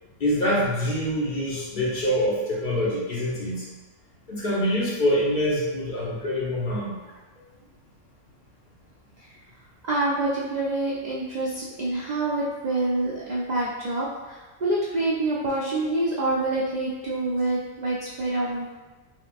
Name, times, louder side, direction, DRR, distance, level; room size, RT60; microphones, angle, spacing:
voice 1, 0.2-3.7 4.3-7.0, equal, 50° left, -6 dB, 0.7 m, -25 dB
voice 2, 9.9-18.7, right 2 dB, 80° right, -5 dB, 0.4 m, -26 dB
3.1 x 2.8 x 2.5 m, 1.2 s
omnidirectional pair, 1.3 m